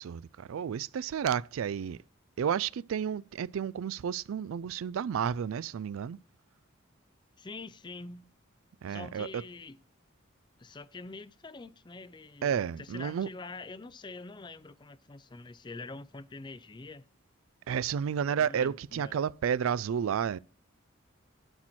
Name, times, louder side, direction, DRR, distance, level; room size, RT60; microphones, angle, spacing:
voice 1, 0.0-2.0 2.4-6.2 8.8-9.4 12.4-13.3 17.7-20.4, right 8 dB, 85° right, 0.3 m, -31 dB
voice 2, 7.4-8.3 8.9-9.8 10.6-17.1 18.2-19.1, left 3 dB, 20° left, 0.4 m, -45 dB
11.5 x 4.5 x 4.2 m
head